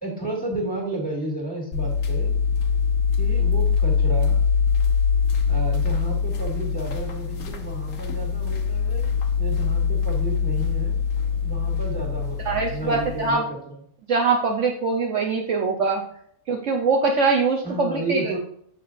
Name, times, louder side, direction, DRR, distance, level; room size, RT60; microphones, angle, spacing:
voice 1, 0.0-2.4 3.2-4.4 5.5-9.1 9.4-11.0 11.4-13.6 17.6-18.4, right 2 dB, 5° left, -1 dB, 2.4 m, -32 dB
sound 1, 1.7-13.3, left 6 dB, 75° left, 1.4 m, -23 dB
voice 2, 12.4-13.4 14.1-16.0 16.5-18.4, right 4 dB, 60° right, 1 dB, 1.1 m, -23 dB
7.2 x 6.6 x 2.5 m, 0.64 s
omnidirectional pair, 1.6 m